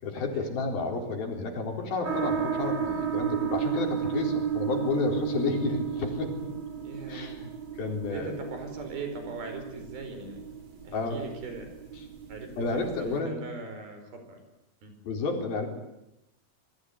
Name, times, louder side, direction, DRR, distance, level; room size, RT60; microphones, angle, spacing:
voice 1, 0.0-6.5 7.1-7.5 7.7-8.4 10.9-11.2 12.0-12.1 12.6-13.4 15.0-15.7, left 4 dB, 65° left, 3 dB, 5.8 m, -31 dB
sound 1, 2.0-13.2, right 8 dB, 30° right, 4.0 m, -33 dB
voice 2, 6.8-7.3 8.1-10.4 10.8-11.7 12.3-14.4 14.8-14.9, right 3 dB, 70° right, 6 dB, 6.5 m, -40 dB
28.0 x 21.0 x 9.7 m, 0.88 s
omnidirectional pair, 4.5 m